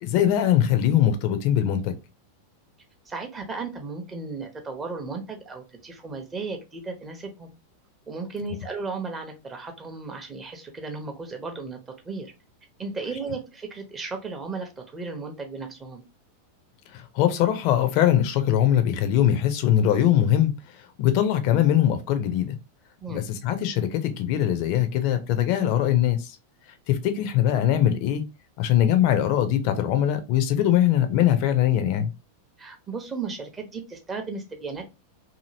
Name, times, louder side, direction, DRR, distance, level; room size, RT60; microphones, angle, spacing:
voice 1, 0.0-1.9 16.9-20.5 21.0-22.6 23.1-26.4 26.9-28.2 28.6-32.1, left 11 dB, 45° left, 0.5 m, -21 dB
voice 2, 3.1-7.5 8.1-11.8 12.0-12.3 12.8-16.0 23.0-23.3 32.6-34.8, right 4 dB, 20° right, 0.7 m, -35 dB
2.8 x 2.7 x 2.6 m
figure-of-eight pair, 90°, 0 cm